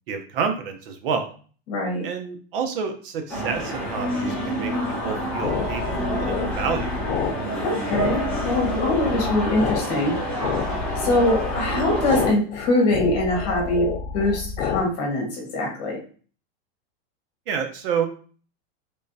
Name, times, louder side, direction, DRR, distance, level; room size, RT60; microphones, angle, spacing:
voice 1, 0.1-1.3 2.0-7.0 17.5-18.1, right 6 dB, 60° right, 6 dB, 0.7 m, -29 dB
voice 2, 1.7-2.0 7.6-10.2 11.0-16.0, left 2 dB, 40° left, 0 dB, 1.4 m, -23 dB
sound 1, 3.3-12.3, right 1 dB, 5° left, 1.0 m, -28 dB
sound 2, 5.0-14.8, left 6 dB, 90° left, 0.7 m, -29 dB
3.5 x 3.3 x 2.7 m, 0.41 s
supercardioid pair, 175°, 32 cm